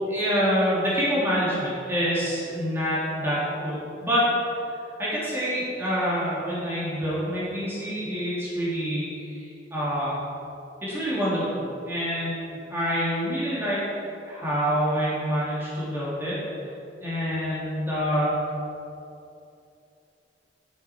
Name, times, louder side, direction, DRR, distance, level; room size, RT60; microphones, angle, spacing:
voice 1, 0.1-4.3 5.0-10.2 10.8-13.8 14.2-16.4 17.0-18.4, equal, 15° right, -9 dB, 2.7 m, -26 dB
11.5 x 8.2 x 4.5 m, 2.6 s
head